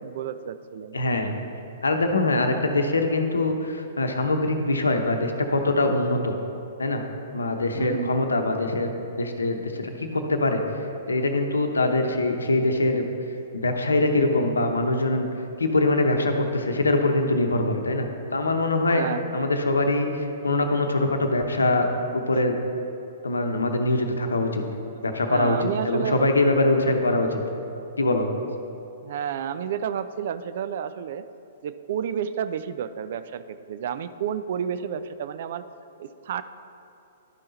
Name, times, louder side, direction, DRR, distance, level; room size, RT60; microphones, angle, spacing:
voice 1, 0.0-1.0 7.7-8.2 18.9-19.2 25.3-26.3 29.0-31.3 31.6-35.6 36.0-36.4, right 8 dB, 55° right, 12 dB, 0.3 m, -30 dB
voice 2, 0.9-1.3 1.8-6.4 6.8-7.0 7.3-8.9 9.2-10.6 11.1-13.0 13.5-15.3 15.6-19.0 19.3-21.9 22.1-22.6 23.2-24.6 25.0-27.4 28.0-28.3, left 2 dB, 80° left, 5 dB, 0.8 m, -23 dB
11.5 x 5.5 x 4.0 m, 2.7 s
figure-of-eight pair, 115°, 0 cm